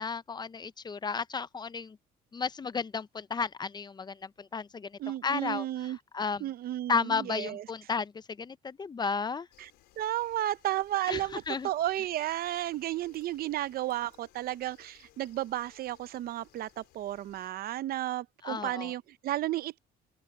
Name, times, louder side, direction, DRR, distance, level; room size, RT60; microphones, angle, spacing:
voice 1, 0.0-2.0 2.3-4.9 5.2-5.6 6.1-6.4 6.9-8.1 8.4-9.5 11.1-11.2 11.5-11.7 18.4-18.9, left 5 dB, 25° left, 0.6 m, -33 dB
voice 2, 5.0-6.0 6.4-7.7 9.6-9.7 10.0-19.8, right 14 dB, 60° right, 0.7 m, -33 dB
sound 1, 9.5-17.5, left 16 dB, 85° left, 4.8 m, -62 dB
open air
cardioid pair, 110°, 17 cm